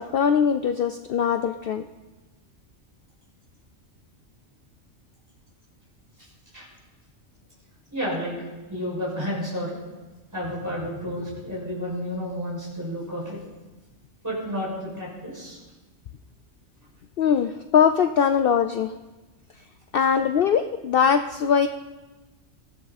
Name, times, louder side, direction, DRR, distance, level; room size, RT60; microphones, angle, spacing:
voice 1, 0.0-1.8 17.2-18.9 19.9-21.7, left 7 dB, 60° left, 9 dB, 0.7 m, -21 dB
voice 2, 7.9-8.4 8.7-9.8 10.3-13.4 14.2-15.6, equal, 15° right, -6 dB, 6.1 m, -31 dB
19.0 x 14.5 x 4.2 m, 1.2 s
omnidirectional pair, 1.3 m